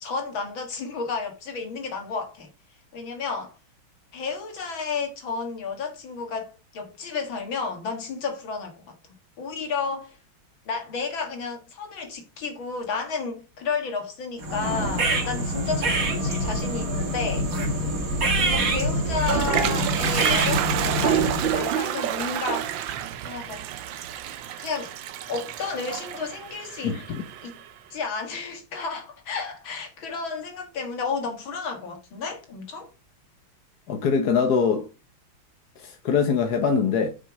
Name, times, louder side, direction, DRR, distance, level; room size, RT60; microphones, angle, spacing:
voice 1, 0.0-2.5 2.9-3.6 4.1-8.8 9.4-10.2 10.7-17.5 18.3-23.7 24.6-25.0 25.3-27.0 27.4-27.5 27.9-32.9, left 5 dB, 70° left, 2.4 m, -32 dB
sound 1, 14.4-21.7, right 1 dB, 45° right, 2.0 m, -25 dB
Toilet flush, 18.8-27.7, right 11 dB, 70° right, 1.4 m, -29 dB
voice 2, 26.8-27.2 33.9-34.9 35.8-37.1, left 6 dB, 55° left, 1.4 m, -23 dB
6.8 x 6.2 x 5.1 m
omnidirectional pair, 2.2 m